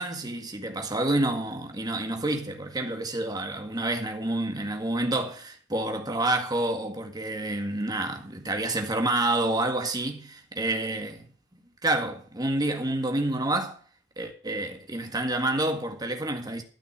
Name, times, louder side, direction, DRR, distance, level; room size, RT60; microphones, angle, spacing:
voice 1, 0.0-11.3 11.8-13.8 14.2-16.6, right 2 dB, 20° right, 1.9 m, -28 dB
13.0 x 5.9 x 8.6 m
head